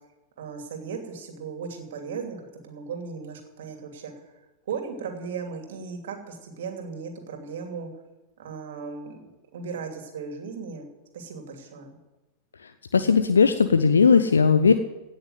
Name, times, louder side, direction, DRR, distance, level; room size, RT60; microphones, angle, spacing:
voice 1, 0.4-2.4 2.6-4.1 4.7-7.9 8.4-9.2 9.5-10.9 11.1-12.0, right 5 dB, 60° right, 4 dB, 2.8 m, -36 dB
voice 2, 12.9-14.7, left 5 dB, 70° left, 11 dB, 0.6 m, -18 dB
17.5 x 6.6 x 9.4 m, 1.0 s
figure-of-eight pair, 90°, 0 cm